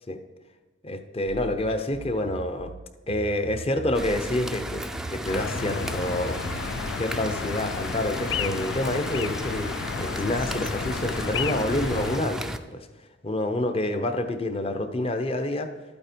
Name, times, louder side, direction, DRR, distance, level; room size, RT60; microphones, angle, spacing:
voice 1, 0.8-2.7 3.1-6.7 7.0-12.9 13.2-15.7, left 1 dB, 30° left, 8 dB, 0.8 m, -28 dB
sound 1, 1.3-6.7, right 4 dB, 80° right, 0.5 m, -41 dB
sound 2, 3.9-12.6, right 1 dB, 5° right, 0.5 m, -34 dB
sound 3, 5.3-12.2, left 6 dB, 65° left, 0.4 m, -32 dB
12.5 x 8.7 x 4.5 m, 1.3 s
head